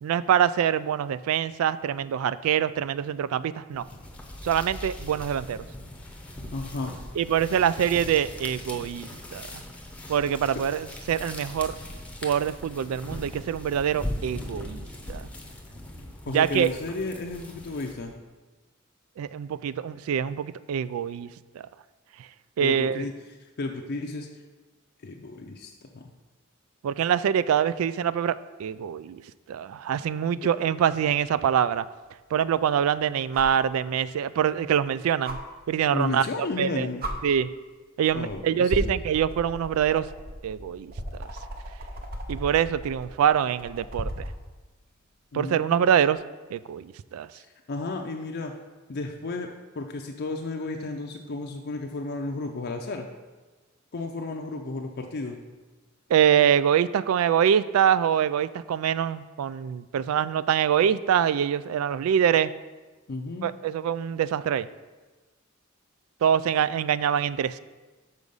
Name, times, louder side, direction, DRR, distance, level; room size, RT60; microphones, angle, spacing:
voice 1, 0.0-3.9 4.4-5.6 7.2-9.6 10.1-11.7 12.2-15.3 16.3-16.7 19.2-21.3 21.5-21.6 22.6-23.1 26.8-29.2 29.5-31.9 32.3-35.4 35.7-36.3 36.6-36.9 37.2-37.5 38.0-40.1 40.4-40.9 42.3-44.3 45.3-46.2 46.5-47.3 56.1-62.5 63.4-64.7 66.2-67.6, right 9 dB, 90° right, 17 dB, 0.3 m, -24 dB
sound 1, 3.7-18.2, left 1 dB, 5° left, 0.7 m, -40 dB
voice 2, 6.5-6.9 10.5-10.6 16.3-18.1 22.6-23.1 23.4-24.3 25.0-26.1 30.4-30.5 35.9-37.0 38.1-39.0 45.3-45.9 47.3-48.5 48.9-53.1 53.9-55.4 63.1-63.5, left 3 dB, 50° left, 2 dB, 0.5 m, -33 dB
sound 2, 33.3-33.6 35.2-35.4 36.5-36.6 37.0-37.1 38.1-38.3 38.7-44.4 46.0-46.1, right 1 dB, 45° right, 0.8 m, -35 dB
6.5 x 4.8 x 5.3 m, 1.2 s
head